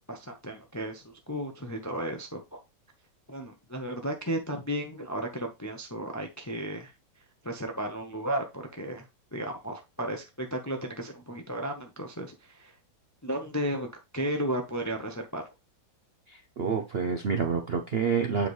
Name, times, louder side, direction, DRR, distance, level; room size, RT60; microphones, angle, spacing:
voice 1, 0.1-2.6 3.3-6.9 7.4-9.1 9.3-12.7 13.2-13.9 14.1-15.5, right 1 dB, 20° left, 0.5 m, -34 dB
voice 2, 16.3-18.5, right 6 dB, 55° right, 0.7 m, -28 dB
7.8 x 4.8 x 3.2 m
omnidirectional pair, 1.9 m